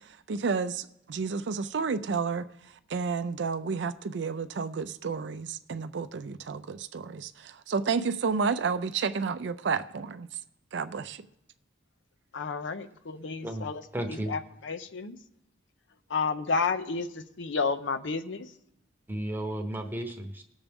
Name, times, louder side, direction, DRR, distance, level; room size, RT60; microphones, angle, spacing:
voice 1, 0.0-2.5 2.9-10.3 10.7-11.2, right 5 dB, 60° right, 0.4 m, -31 dB
voice 2, 12.3-15.2 16.1-18.6, left 4 dB, 70° left, 0.6 m, -31 dB
voice 3, 13.9-14.3 19.1-20.4, right 1 dB, 10° right, 0.9 m, -33 dB
18.5 x 7.1 x 3.5 m
head